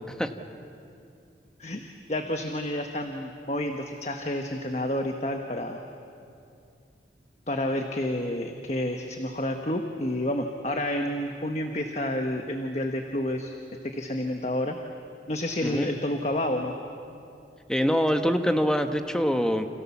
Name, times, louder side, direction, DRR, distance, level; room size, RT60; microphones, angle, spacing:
voice 1, 1.6-5.8 7.5-13.5 13.8-14.8 15.3-16.7, left 1 dB, 40° left, 4 dB, 1.3 m, -29 dB
voice 2, 17.7-19.7, equal, 5° left, 6 dB, 1.2 m, -24 dB
29.5 x 27.5 x 7.3 m, 2.6 s
head